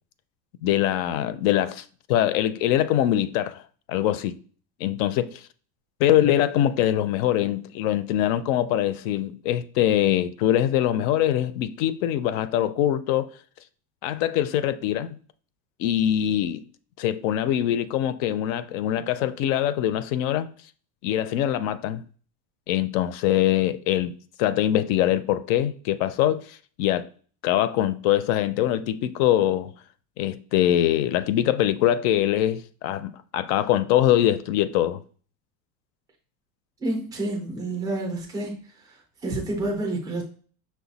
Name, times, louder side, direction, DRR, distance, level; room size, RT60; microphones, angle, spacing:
voice 1, 0.6-3.6 3.9-4.3 4.8-5.4 6.0-13.3 14.0-15.2 15.8-16.6 17.0-20.5 21.0-22.0 22.7-24.1 24.4-27.1 27.4-29.7 30.2-35.0, left 12 dB, 65° left, 0.5 m, -23 dB
voice 2, 36.8-38.5 38.9-39.0 39.2-40.2, right 2 dB, 10° right, 0.3 m, -28 dB
6.0 x 2.2 x 4.0 m
cardioid pair, 180°, 45 cm